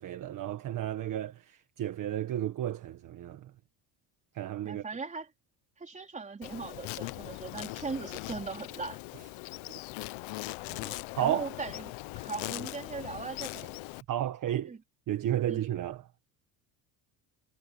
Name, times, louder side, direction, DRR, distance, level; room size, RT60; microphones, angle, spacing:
voice 1, 0.0-3.4 4.3-4.8 11.2-11.4 14.1-14.7 15.1-16.0, right 12 dB, 40° right, 1.4 m, -32 dB
voice 2, 4.6-5.3 5.8-9.0 10.8-13.7 14.7-14.8 15.5-15.6, right 4 dB, 15° right, 4.4 m, -39 dB
Insect, 6.4-14.0, left 21 dB, 80° left, 0.9 m, -40 dB
cardioid pair, 180°, 47 cm